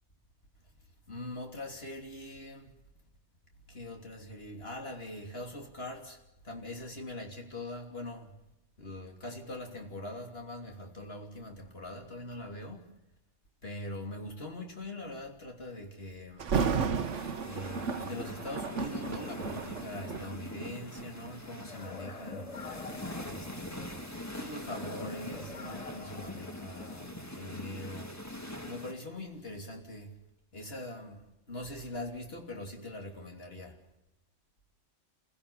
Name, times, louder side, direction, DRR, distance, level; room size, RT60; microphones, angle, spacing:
voice 1, 1.1-2.7 3.7-8.4 8.8-12.9 13.6-16.5 17.4-22.6 23.2-23.9 24.4-28.1 28.6-30.2 30.5-33.8, left 1 dB, 55° left, 3.3 m, -42 dB
Thunder, 16.4-21.4 22.0-22.3 22.9-25.7 26.0-26.1, right 6 dB, 75° right, 1.4 m, -34 dB
sound 1, 17.0-28.9, left 1 dB, 15° left, 1.7 m, -43 dB
sound 2, 21.7-24.1 24.7-27.1, left 4 dB, 35° left, 1.0 m, -47 dB
28.0 x 16.0 x 7.0 m
omnidirectional pair, 1.2 m